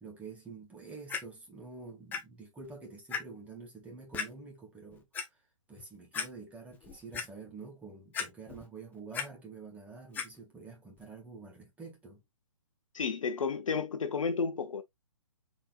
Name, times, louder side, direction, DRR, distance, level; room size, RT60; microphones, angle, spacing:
voice 1, 0.0-5.4 5.7-12.2, right 4 dB, 10° right, 1.7 m, -48 dB
Clock, 1.1-1.2 2.1-2.2 2.6-2.7 3.1-3.2 4.1-4.3 4.9-5.2 5.8-5.9 6.1-6.3 6.7-7.3 8.1-8.7 8.9-9.3 10.1-10.3 11.0-11.1, left 6 dB, 10° left, 0.6 m, -35 dB
voice 2, 12.9-14.8, left 5 dB, 75° left, 0.9 m, -32 dB
4.2 x 3.9 x 2.4 m
hypercardioid pair, 140°, 17 cm